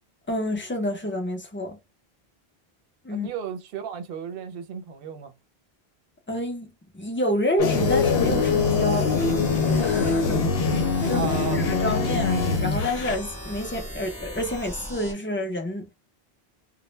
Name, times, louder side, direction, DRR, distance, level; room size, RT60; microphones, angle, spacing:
voice 1, 0.3-1.8 3.0-3.3 6.3-6.7 6.9-9.1 9.8-10.4 11.1-11.2 11.5-15.9, left 1 dB, 20° left, 0.3 m, -28 dB
voice 2, 3.1-5.3 11.1-11.7, right 7 dB, 70° right, 0.8 m, -34 dB
sound 1, 7.6-13.1, left 4 dB, 75° left, 0.8 m, -23 dB
sound 2, 7.7-15.1, equal, ahead, 0.8 m, -38 dB
2.1 x 2.1 x 3.0 m
omnidirectional pair, 1.0 m